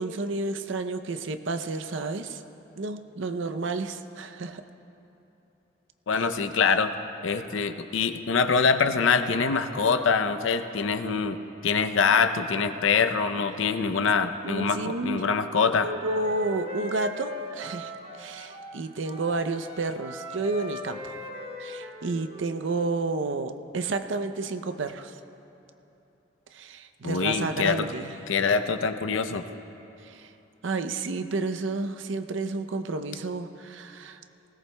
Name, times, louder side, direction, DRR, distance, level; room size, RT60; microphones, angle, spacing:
voice 1, 0.0-2.4 2.8-4.6 6.1-6.3 14.4-15.3 15.8-21.2 21.6-25.2 26.5-28.2 30.0-30.3 30.6-34.2, right 3 dB, 75° right, 9 dB, 0.6 m, -31 dB
voice 2, 6.1-6.9 7.2-15.9 27.0-27.9 28.3-29.5, left 5 dB, 80° left, 9 dB, 0.6 m, -24 dB
Wind instrument woodwind instrument, 15.3-18.8 19.0-22.6, left 1 dB, 30° right, 1.1 m, -39 dB
19.5 x 17.0 x 2.2 m, 3.0 s
head